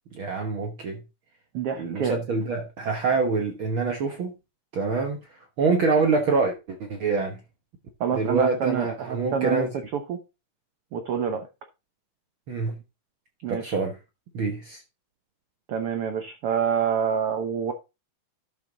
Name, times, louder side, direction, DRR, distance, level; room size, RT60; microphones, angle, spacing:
voice 1, 0.1-1.0 1.8-4.3 4.7-5.2 5.6-7.4 8.1-9.7 12.5-12.7 13.5-13.9 14.3-14.8, right 4 dB, 60° right, 1.4 m, -25 dB
voice 2, 1.5-2.2 8.0-10.2 10.9-11.5 13.4-13.8 15.7-17.7, right 7 dB, 75° right, 1.3 m, -27 dB
12.0 x 5.7 x 3.9 m
omnidirectional pair, 3.9 m